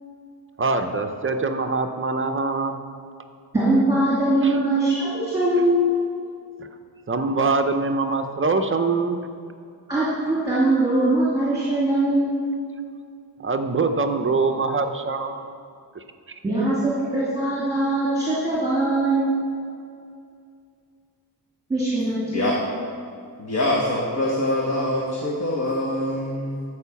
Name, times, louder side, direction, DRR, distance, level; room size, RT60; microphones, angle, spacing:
voice 1, 0.6-2.8 4.4-4.6 6.6-6.7 7.1-9.3 13.4-15.6 15.9-16.4, right 3 dB, 30° right, 7 dB, 0.6 m, -24 dB
voice 2, 3.5-5.8 9.9-12.4 16.4-19.3 21.7-22.5, right 2 dB, 10° right, -9 dB, 2.4 m, -21 dB
voice 3, 22.3-22.6 23.4-26.6, left 1 dB, 40° left, -3 dB, 1.3 m, -24 dB
13.0 x 4.9 x 7.0 m, 2.3 s
wide cardioid pair, 165°, 41 cm